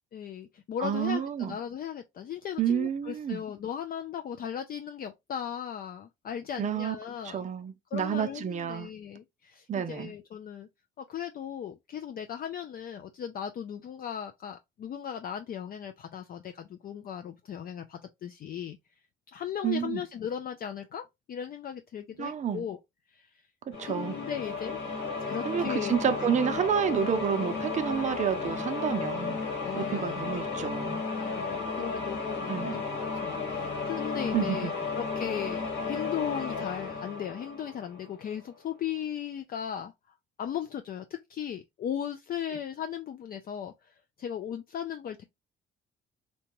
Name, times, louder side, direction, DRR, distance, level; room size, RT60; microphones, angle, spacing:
voice 1, 0.1-7.4 7.9-10.7 11.0-18.8 19.3-22.8 23.1-23.3 23.8-25.0 25.3-26.0 29.6-30.0 31.2-32.8 33.2-39.9 40.4-45.2, left 9 dB, 50° left, 0.4 m, -37 dB
voice 2, 0.8-1.6 2.6-3.4 6.6-7.0 7.2-8.9 9.7-10.1 19.6-20.0 22.2-22.7 23.7-24.2 25.4-29.4 29.9-31.0 32.5-32.8 34.3-34.7, right 8 dB, 40° right, 0.5 m, -29 dB
sound 1, 23.7-38.3, left 4 dB, 75° left, 1.4 m, -34 dB
2.8 x 2.2 x 2.9 m
cardioid pair, 90°, 20 cm